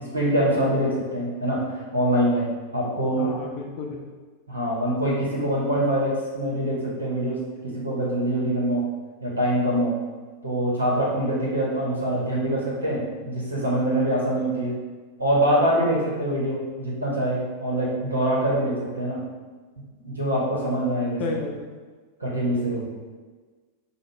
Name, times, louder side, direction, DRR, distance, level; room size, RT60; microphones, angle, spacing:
voice 1, 0.0-1.6 1.9-2.5 2.7-3.3 4.5-8.9 9.2-9.9 10.4-14.7 15.2-19.2 20.0-21.4 22.2-22.9, right 1 dB, 80° right, -5 dB, 1.1 m, -24 dB
voice 2, 3.2-4.0 21.2-21.7, left 4 dB, 40° left, 0 dB, 0.5 m, -32 dB
5.1 x 2.3 x 3.3 m, 1.4 s
figure-of-eight pair, 90°, 0 cm